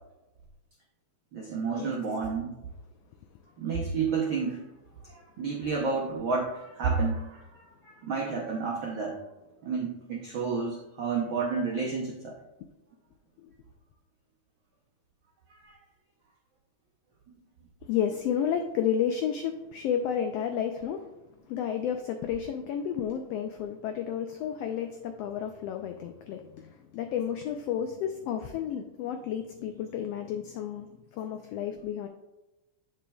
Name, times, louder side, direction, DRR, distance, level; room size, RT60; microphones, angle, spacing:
voice 1, 1.3-2.5 3.6-4.7 5.0-9.2 9.6-12.4 15.6-15.8, right 4 dB, 75° right, -2 dB, 1.1 m, -31 dB
voice 2, 17.8-21.1 21.5-32.1, left 8 dB, 85° left, 6 dB, 1.4 m, -31 dB
8.1 x 6.1 x 2.3 m, 1.0 s
omnidirectional pair, 3.4 m